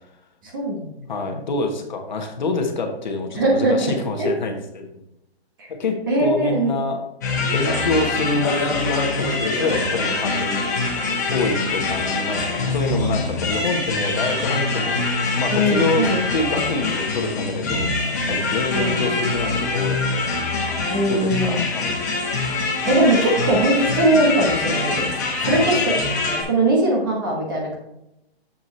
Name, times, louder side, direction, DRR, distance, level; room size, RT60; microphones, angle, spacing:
voice 1, 0.4-1.0 1.3-1.4 3.4-4.3 5.6-5.7 6.1-6.7 15.5-16.7 18.7-19.1 20.9-21.6 22.9-26.0 26.3-27.8, right 1 dB, 20° right, -1 dB, 1.1 m, -21 dB
voice 2, 1.1-5.0 5.7-7.0 7.3-10.8 11.3-15.0 15.4-17.9 18.3-20.3 21.1-22.0 25.4-25.9, left 3 dB, 45° left, 4 dB, 1.2 m, -26 dB
sound 1, 7.2-26.4, left 3 dB, 15° left, 0.8 m, -24 dB
7.3 x 6.9 x 3.1 m, 0.86 s
hypercardioid pair, 175°, 32 cm